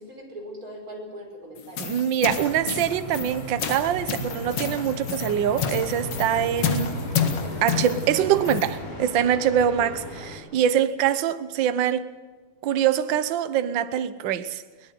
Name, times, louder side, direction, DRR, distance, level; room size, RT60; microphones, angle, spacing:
voice 1, 0.0-1.8 10.1-10.3, equal, 25° right, 5.6 m, -40 dB
ns monsterfootsteps, 1.6-8.8, left 7 dB, 55° left, 2.7 m, -30 dB
voice 2, 1.8-7.0 7.6-12.0 12.6-14.6, right 9 dB, 75° right, 1.0 m, -24 dB
sound 1, 2.2-10.4, left 1 dB, 30° left, 6.6 m, -35 dB
22.0 x 18.0 x 7.7 m
omnidirectional pair, 3.4 m